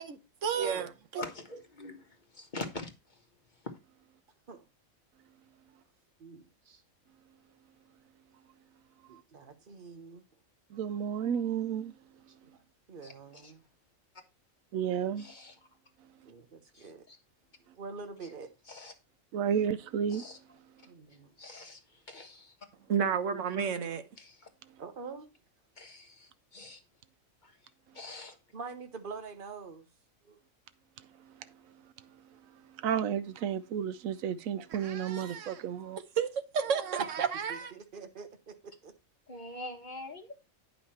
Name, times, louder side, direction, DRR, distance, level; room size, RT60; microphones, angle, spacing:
voice 1, 0.0-1.2 22.9-24.0 34.7-35.6 36.2-37.7, right 7 dB, 70° right, 1.2 m, -32 dB
voice 2, 1.2-3.2 13.0-13.5 15.2-15.5 16.7-17.2 18.7-18.9 20.1-20.4 21.4-22.5 24.2-24.5 25.8-26.8 27.4-27.6 27.9-28.4 39.3-40.3, left 2 dB, 35° left, 1.5 m, -45 dB
voice 3, 6.2-6.8 9.1-10.2 12.4-13.6 16.2-17.1 17.7-18.5 20.9-21.3 24.8-25.3 28.5-29.9 30.2-30.4 37.0-37.1 37.5-38.9, right 4 dB, 45° right, 1.3 m, -46 dB
voice 4, 10.7-11.9 14.7-15.3 19.3-20.2 32.8-36.0, right 8 dB, 90° right, 1.0 m, -32 dB
9.4 x 5.7 x 4.2 m
omnidirectional pair, 1.4 m